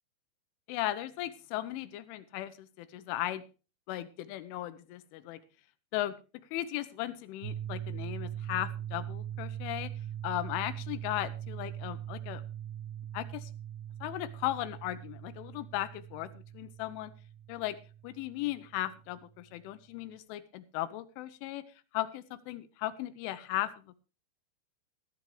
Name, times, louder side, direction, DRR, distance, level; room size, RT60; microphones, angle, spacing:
voice 1, 0.7-3.4 3.9-5.4 5.9-6.2 6.5-9.9 10.2-12.4 13.1-13.5 14.0-17.1 17.5-17.8 18.0-21.6 21.9-24.0, left 14 dB, 85° left, 13 dB, 3.3 m, -36 dB
sound 1, 7.4-19.3, right 10 dB, 70° right, 2.2 m, -41 dB
14.5 x 13.5 x 3.1 m, 0.33 s
omnidirectional pair, 5.5 m